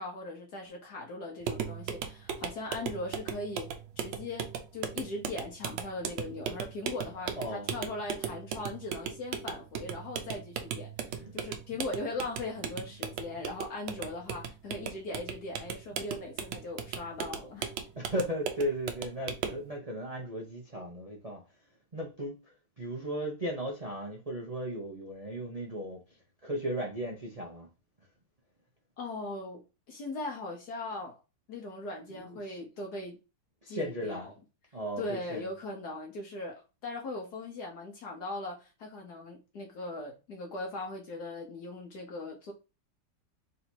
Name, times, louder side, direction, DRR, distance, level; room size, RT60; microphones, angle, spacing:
voice 1, 0.0-3.7 4.0-17.7 29.0-29.6 29.9-31.2 31.5-33.2 33.7-34.3 35.0-42.5, left 2 dB, 65° left, 1.4 m, -39 dB
sound 1, 1.4-19.7, right 8 dB, 80° right, 1.4 m, -38 dB
voice 2, 7.3-7.8 11.1-11.3 13.0-13.2 17.9-21.6 21.9-26.2 26.4-27.7 32.1-32.6 33.6-34.3 34.7-35.5, equal, 50° right, 0.4 m, -36 dB
3.9 x 2.7 x 4.4 m
omnidirectional pair, 2.0 m